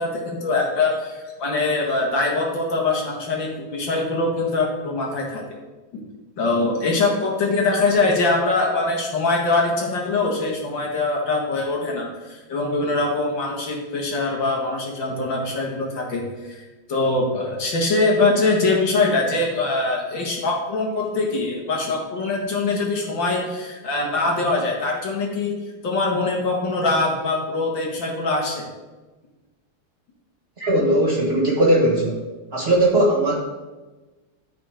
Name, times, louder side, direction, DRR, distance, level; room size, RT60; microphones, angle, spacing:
voice 1, 0.0-5.4 6.4-16.6 16.9-25.5 25.8-28.7, left 3 dB, 65° left, -1 dB, 2.4 m, -23 dB
voice 2, 30.6-32.2 32.5-33.4, right 1 dB, 30° right, -1 dB, 1.5 m, -18 dB
12.5 x 4.6 x 5.1 m, 1.2 s
omnidirectional pair, 2.2 m